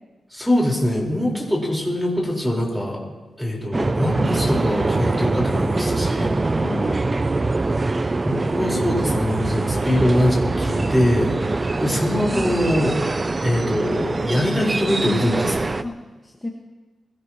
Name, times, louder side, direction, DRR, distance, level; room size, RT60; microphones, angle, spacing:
voice 1, 0.3-3.0 3.4-6.3 8.2-13.0 13.4-15.7, left 1 dB, ahead, -2 dB, 4.7 m, -23 dB
sound 1, 3.7-15.8, right 3 dB, 30° right, 0.5 m, -23 dB
voice 2, 6.2-7.3 12.3-12.6 15.8-16.0 16.2-16.5, left 2 dB, 15° left, -1 dB, 1.7 m, -31 dB
22.0 x 17.5 x 3.1 m, 1.2 s
cardioid pair, 90°, 0 cm